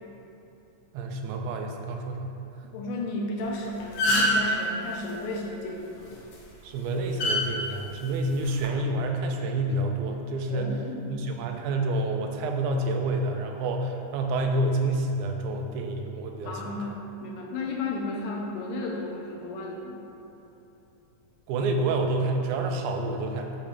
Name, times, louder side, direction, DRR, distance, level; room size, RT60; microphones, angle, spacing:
voice 1, 0.9-2.3 6.6-10.8 11.1-16.8 21.5-23.6, right 2 dB, 80° right, 3 dB, 1.8 m, -28 dB
voice 2, 2.7-5.8 10.5-11.2 16.4-20.0, left 2 dB, 85° left, -1 dB, 2.4 m, -33 dB
sound 1, 3.4-3.6 3.8-4.5 6.1-6.3 7.2-7.4 8.4-8.7, left 1 dB, 70° left, 1.3 m, -23 dB
7.1 x 3.2 x 5.0 m, 3.0 s
omnidirectional pair, 3.8 m